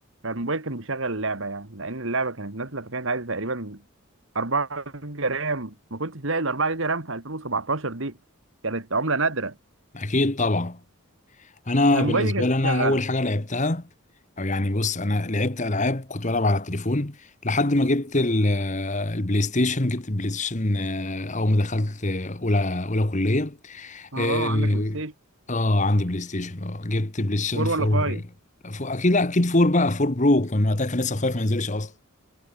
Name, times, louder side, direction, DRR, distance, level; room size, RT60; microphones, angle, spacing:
voice 1, 0.2-3.8 4.3-8.2 8.6-9.5 11.9-13.0 24.1-25.1 27.5-28.2, right 3 dB, 60° right, 2.2 m, -28 dB
voice 2, 9.9-10.8 11.7-13.8 14.4-17.2 17.4-25.0 25.5-28.2 28.6-31.9, left 2 dB, 35° left, 1.4 m, -24 dB
head